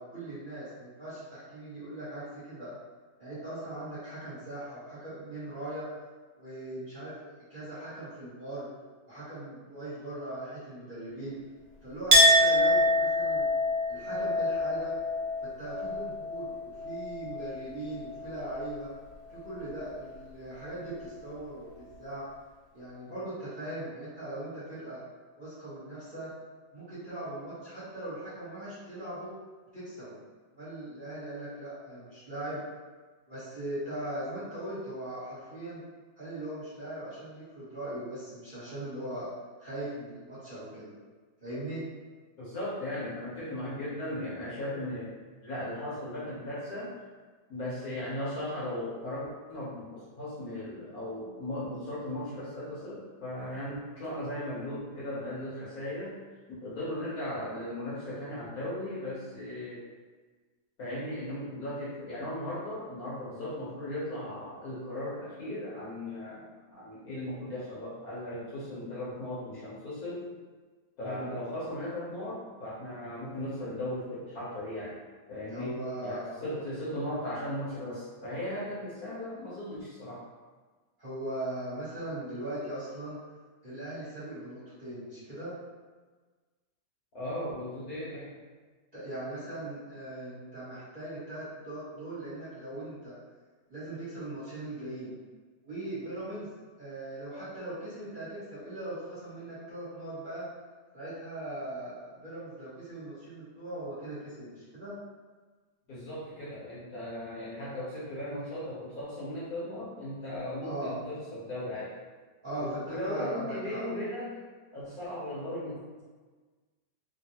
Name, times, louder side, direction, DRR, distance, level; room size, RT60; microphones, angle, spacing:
voice 1, 0.0-2.7 3.2-5.9 6.4-8.7 9.0-11.4 11.8-13.5 13.9-14.9 15.4-18.9 19.3-22.3 22.7-25.0 25.4-26.3 26.7-29.3 29.7-30.2 30.6-32.6 33.3-35.8 36.2-39.3 39.6-40.9 41.4-41.9 71.0-71.3 75.5-76.6 81.0-83.2 83.6-85.5 88.9-93.2 93.7-95.1 95.6-96.5 96.8-100.4 100.9-104.9 110.6-110.9 112.4-113.8, right 1 dB, 30° right, -14 dB, 1.3 m, -39 dB
Chink clink, 12.1-17.6 17.9-18.8, left 1 dB, 70° right, 1.2 m, -26 dB
voice 2, 42.4-45.2 45.4-46.9 47.5-56.2 56.5-59.8 60.8-70.3 71.0-75.0 75.3-75.7 76.0-80.2 87.1-88.4 105.9-111.9 112.5-114.4 114.7-116.0, left 1 dB, 60° left, -9 dB, 1.2 m, -37 dB
3.1 x 2.6 x 2.8 m, 1.4 s
omnidirectional pair, 2.0 m